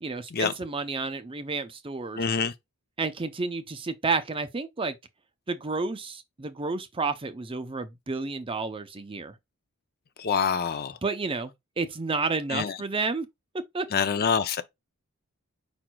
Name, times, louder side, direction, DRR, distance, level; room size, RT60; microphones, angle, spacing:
voice 1, 0.0-2.2 3.0-5.0 5.5-9.3 11.0-13.3 13.7-13.8, right 4 dB, 25° right, 0.5 m, -31 dB
voice 2, 2.2-2.5 10.2-11.0 12.5-12.7 13.9-14.6, left 6 dB, 45° left, 0.5 m, -26 dB
5.1 x 4.5 x 2.2 m
head